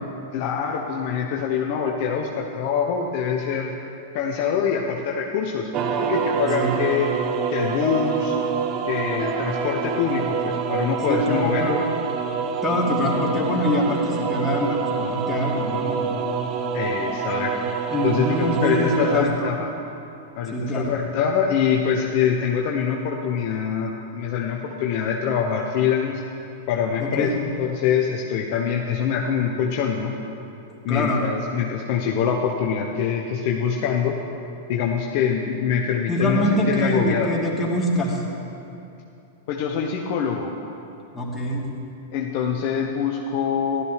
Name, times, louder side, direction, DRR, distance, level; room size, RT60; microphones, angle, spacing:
voice 1, 0.3-3.7 4.1-5.7 6.0-7.1 7.5-8.4 8.9-11.6 16.7-17.5 18.0-19.7 20.4-26.2 26.7-30.1 30.8-34.2 34.7-37.3 39.5-40.5 42.1-43.8, left 7 dB, 55° left, 0 dB, 0.9 m, -24 dB
sound 1, 5.7-19.2, right 6 dB, 40° right, 0.9 m, -26 dB
Piano, 7.8-10.5 10.7-11.1 11.8-12.0, left 3 dB, 35° left, 2.3 m, -36 dB
voice 2, 11.1-11.8 12.6-16.1 17.9-19.5 20.5-20.9 27.0-27.3 30.9-31.3 36.1-38.2 41.1-41.6, left 1 dB, 15° left, -4 dB, 2.7 m, -24 dB
15.0 x 12.5 x 3.3 m, 2.8 s
hypercardioid pair, 100°, 0 cm